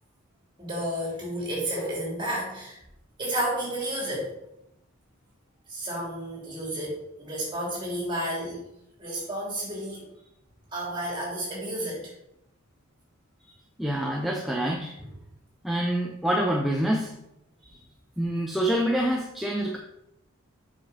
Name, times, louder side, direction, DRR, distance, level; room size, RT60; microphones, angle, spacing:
voice 1, 0.6-2.8 3.2-4.3 5.7-8.6 9.0-10.0 10.7-12.0 13.4-13.5 17.6-17.8, right 1 dB, 20° right, -4 dB, 3.2 m, -31 dB
voice 2, 13.8-14.9 15.6-17.1 18.2-19.8, right 1 dB, ahead, -1 dB, 0.6 m, -26 dB
7.9 x 6.0 x 4.2 m, 0.83 s
head